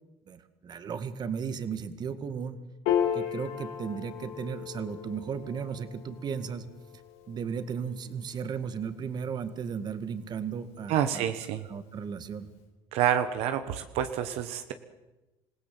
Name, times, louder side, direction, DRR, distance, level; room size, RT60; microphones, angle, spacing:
voice 1, 0.3-2.6 3.1-6.7 7.3-11.3 11.7-12.5, right 6 dB, 40° right, 11 dB, 2.0 m, -35 dB
Piano, 2.9-9.5, left 9 dB, 85° left, 4.5 m, -35 dB
voice 2, 10.9-11.7 12.9-14.7, right 10 dB, 75° right, 9 dB, 1.5 m, -28 dB
27.0 x 17.0 x 8.0 m, 1.0 s
cardioid pair, 105°, 11 cm